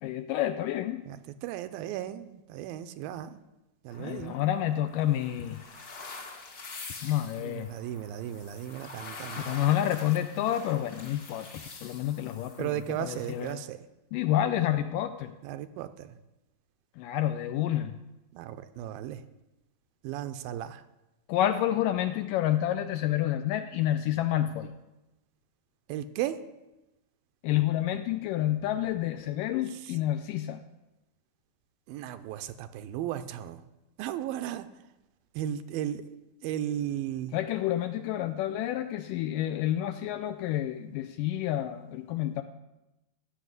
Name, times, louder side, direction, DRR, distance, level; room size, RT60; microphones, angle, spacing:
voice 1, 0.0-1.0 4.0-5.6 7.0-7.7 9.4-13.6 14.1-15.3 17.0-18.0 21.3-24.7 27.4-30.6 37.3-42.4, left 12 dB, 80° left, 9 dB, 2.0 m, -29 dB
voice 2, 1.4-3.4 3.8-4.4 7.4-9.6 12.6-13.8 15.4-16.1 18.3-19.2 20.0-20.8 25.9-26.4 31.9-33.6 34.0-34.7 35.4-36.0 36.4-37.4, right 11 dB, 80° right, 11 dB, 2.3 m, -35 dB
sound 1, 3.9-13.5, left 3 dB, 45° left, 1.2 m, -46 dB
15.0 x 6.7 x 9.5 m, 0.99 s
omnidirectional pair, 4.3 m